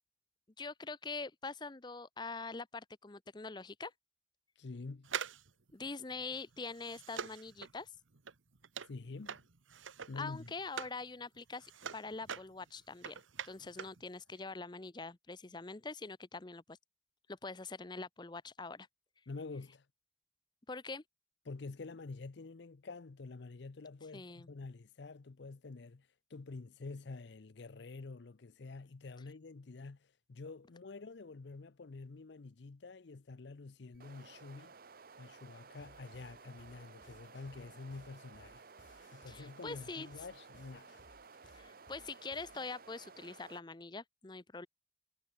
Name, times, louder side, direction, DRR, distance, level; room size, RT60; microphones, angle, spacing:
voice 1, 0.6-3.9 5.7-7.9 10.2-16.8 17.3-18.9 20.7-21.0 24.1-24.5 39.3-40.3 41.5-44.7, left 3 dB, 20° left, 0.6 m, -44 dB
voice 2, 4.6-5.1 8.9-9.4 10.1-10.5 19.3-19.8 21.5-34.7 35.2-38.6 39.1-40.9, left 3 dB, 65° left, 0.6 m, -48 dB
sound 1, 5.0-11.0 11.4-14.0 14.3-14.4, right 7 dB, 85° right, 1.2 m, -45 dB
sound 2, 33.9-43.6, right 4 dB, 50° right, 0.8 m, -56 dB
sound 3, 35.8-42.7, left 2 dB, 80° left, 2.6 m, -64 dB
head